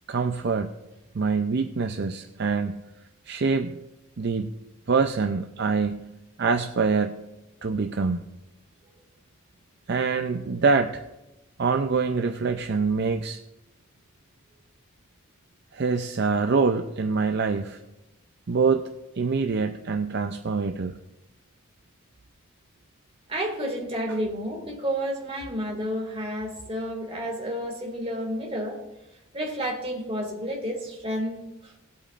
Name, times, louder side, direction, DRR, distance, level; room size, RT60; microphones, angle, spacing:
voice 1, 0.1-0.8 1.1-2.7 3.3-3.8 4.2-4.6 4.9-6.1 6.4-7.2 7.6-8.2 9.9-11.0 11.6-13.4 15.7-17.8 18.5-18.9 19.2-21.0, right 4 dB, 50° right, 6 dB, 0.5 m, -25 dB
voice 2, 23.3-28.8 29.3-31.7, equal, 25° right, 0 dB, 2.1 m, -31 dB
18.5 x 8.5 x 2.5 m, 0.97 s
head